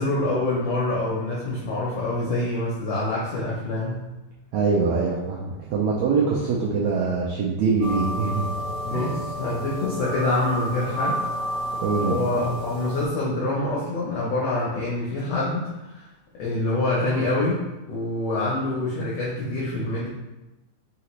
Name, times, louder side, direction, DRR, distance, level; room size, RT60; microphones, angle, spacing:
voice 1, 0.0-4.0 8.8-11.2 12.0-16.1 16.4-20.1, left 2 dB, 80° left, -5 dB, 1.4 m, -26 dB
voice 2, 4.5-8.5 8.9-9.2 11.8-12.2, right 4 dB, 85° right, -4 dB, 1.5 m, -23 dB
sound 1, 7.8-13.1, equal, 65° right, 1.5 m, -30 dB
5.0 x 2.9 x 3.0 m, 1.0 s
omnidirectional pair, 3.7 m